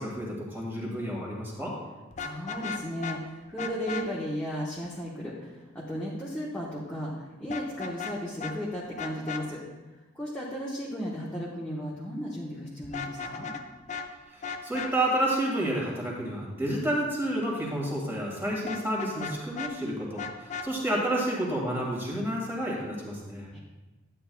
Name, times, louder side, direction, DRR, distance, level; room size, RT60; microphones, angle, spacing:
voice 1, 0.0-1.8 14.3-23.5, right 1 dB, 10° right, -3 dB, 1.8 m, -30 dB
Vehicle horn car horn honking, 2.1-3.2 3.6-4.0 7.5-8.1 8.4-8.5 9.0-9.4 12.8-13.6 13.9-14.1 14.4-14.9 18.7-19.7 20.2-20.7, left 5 dB, 35° left, 0.5 m, -35 dB
voice 2, 2.2-9.6 10.1-13.5 23.5-23.6, equal, 5° left, -7 dB, 1.1 m, -35 dB
11.0 x 8.8 x 2.3 m, 1.2 s
head